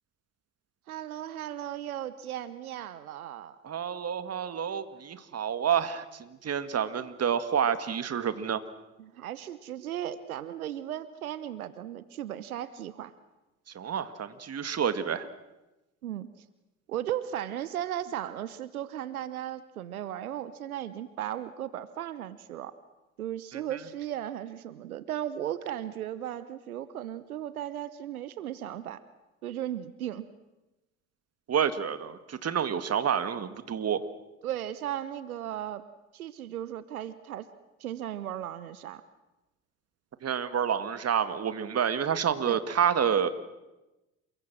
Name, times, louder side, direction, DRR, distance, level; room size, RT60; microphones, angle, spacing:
voice 1, 0.9-3.6 9.0-13.1 16.0-16.3 16.9-22.7 23.2-29.0 29.4-30.3 34.4-35.8 36.1-37.5 37.8-39.0 42.5-42.6, right 11 dB, 85° right, 15 dB, 1.0 m, -36 dB
voice 2, 3.6-6.0 6.4-8.6 13.8-15.3 23.5-23.6 31.5-34.0 40.2-43.3, right 8 dB, 35° right, 12 dB, 2.0 m, -28 dB
28.0 x 23.0 x 6.2 m, 1.0 s
hypercardioid pair, 65°, 42 cm